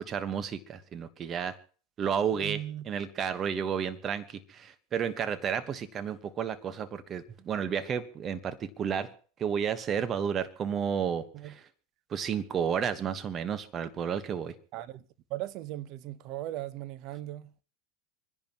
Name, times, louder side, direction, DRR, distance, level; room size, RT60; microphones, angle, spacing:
voice 1, 0.0-1.6 2.0-9.1 9.4-11.5 12.1-14.5, right 7 dB, 35° right, 1.2 m, -32 dB
voice 2, 2.3-2.9 11.3-11.5 14.7-15.0 15.3-17.5, right 14 dB, 55° right, 0.8 m, -38 dB
27.0 x 10.5 x 3.0 m
hypercardioid pair, 105°, 0 cm